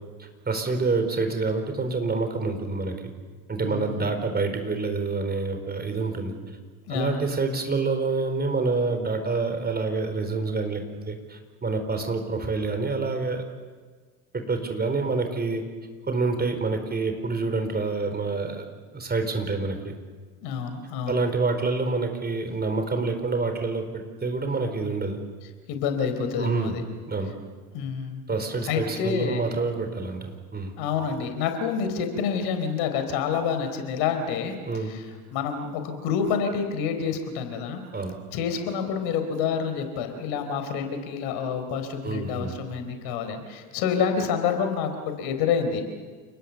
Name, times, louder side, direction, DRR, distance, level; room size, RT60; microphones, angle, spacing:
voice 1, 0.2-3.0 3.5-6.3 6.9-13.4 14.3-15.6 16.1-18.7 18.9-19.9 21.1-25.2 26.4-26.7 27.1-27.3 28.3-30.7 34.7-34.9 37.9-38.2 42.0-42.5, right 3 dB, 20° right, 6 dB, 4.7 m, -27 dB
voice 2, 3.6-4.1 6.9-7.2 20.4-21.2 25.7-26.8 27.7-28.2 28.6-29.4 30.8-34.5 34.9-35.1 35.3-37.8 38.3-45.8, left 6 dB, 55° left, 8 dB, 4.1 m, -28 dB
29.0 x 20.0 x 7.1 m, 1.5 s
figure-of-eight pair, 70°, 44 cm